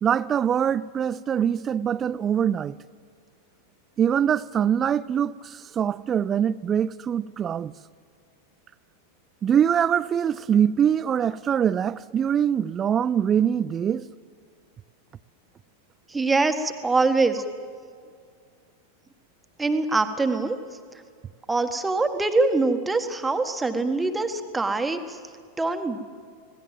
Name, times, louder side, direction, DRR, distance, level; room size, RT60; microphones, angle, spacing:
voice 1, 0.0-2.8 4.0-7.7 9.4-14.1, right 8 dB, 25° right, 0.5 m, -23 dB
voice 2, 16.1-17.4 19.6-20.6 21.5-25.2 25.6-26.0, right 3 dB, 10° right, 1.7 m, -24 dB
26.0 x 18.0 x 7.6 m
figure-of-eight pair, 90°, 0 cm